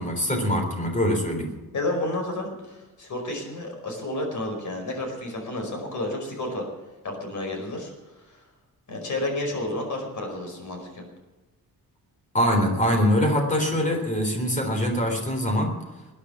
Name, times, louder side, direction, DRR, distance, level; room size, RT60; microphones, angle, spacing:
voice 1, 0.0-1.5 12.3-15.7, equal, 20° left, 3 dB, 3.7 m, -23 dB
voice 2, 1.7-6.7 7.0-7.9 8.3-8.4 8.9-11.0, left 1 dB, 55° left, 3 dB, 5.1 m, -31 dB
21.0 x 9.9 x 6.0 m, 1.1 s
wide cardioid pair, 165°, 36 cm